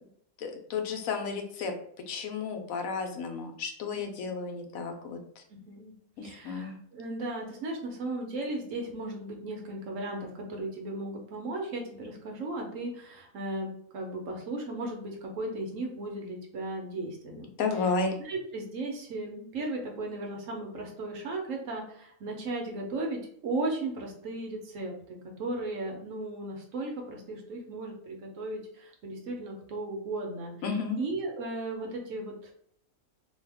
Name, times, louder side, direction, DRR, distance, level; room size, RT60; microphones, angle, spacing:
voice 1, 0.4-1.7 2.1-5.2 6.2-6.8 17.6-18.2 30.6-31.0, left 4 dB, 75° left, 4 dB, 1.0 m, -32 dB
voice 2, 3.9-4.3 5.6-5.9 6.2-17.5 18.2-30.5 31.0-32.5, right 2 dB, 65° right, 1 dB, 1.1 m, -36 dB
2.7 x 2.3 x 3.3 m, 0.65 s
omnidirectional pair, 1.5 m